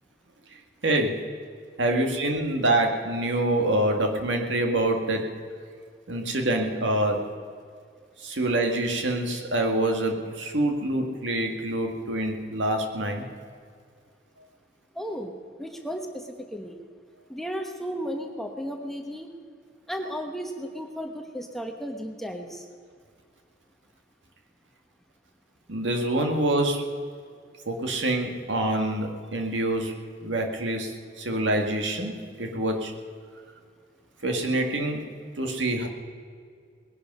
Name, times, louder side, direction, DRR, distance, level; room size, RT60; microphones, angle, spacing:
voice 1, 0.8-1.1 1.8-5.2 6.1-7.3 8.2-13.2 25.7-26.8 27.7-29.9 30.2-30.9 31.2-32.1 32.4-32.9 34.2-35.0 35.4-35.9, right 1 dB, 80° right, 3 dB, 2.0 m, -26 dB
voice 2, 14.9-15.3 15.6-16.8 17.3-19.3 19.9-22.6, equal, ahead, 3 dB, 1.1 m, -34 dB
20.0 x 11.0 x 5.5 m, 2.1 s
head